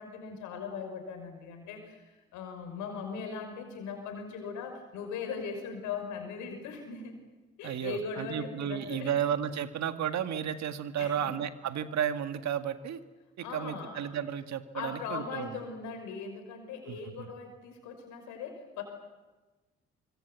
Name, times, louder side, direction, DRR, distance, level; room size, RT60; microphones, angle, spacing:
voice 1, 0.0-7.1 7.6-9.1 11.0-11.3 13.4-14.1 14.7-18.8, left 5 dB, 80° left, 6 dB, 5.8 m, -39 dB
voice 2, 7.6-13.0 13.4-15.6 16.9-17.3, right 9 dB, 65° right, 9 dB, 1.8 m, -33 dB
25.0 x 24.0 x 8.2 m, 1.2 s
hypercardioid pair, 50°, 29 cm